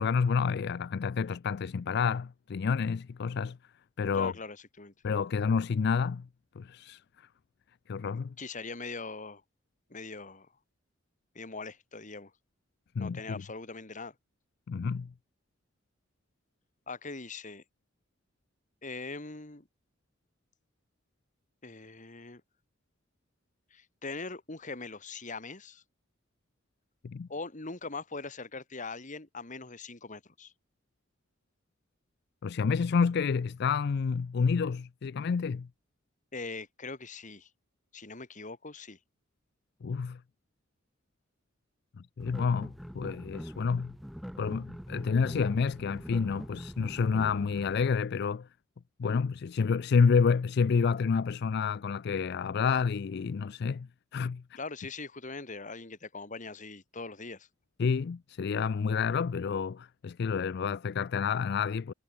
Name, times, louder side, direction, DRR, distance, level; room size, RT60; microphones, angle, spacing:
voice 1, 0.0-3.6 4.0-4.3 5.0-6.3 6.6-7.0 7.9-8.3 13.0-13.4 14.7-15.1 27.0-27.3 32.4-35.7 39.8-40.2 42.0-43.9 44.4-48.5 49.0-54.4 57.8-61.9, left 5 dB, 55° left, 0.4 m, -29 dB
voice 2, 4.1-4.9 8.4-9.4 9.9-10.5 11.3-12.3 13.0-14.1 16.9-17.6 18.8-19.7 21.6-22.4 23.7-25.8 27.3-30.5 36.3-37.5 37.9-39.0 54.6-57.5, left 3 dB, 40° left, 2.4 m, -41 dB
sound 1, 42.2-47.9, equal, ahead, 5.0 m, -43 dB
head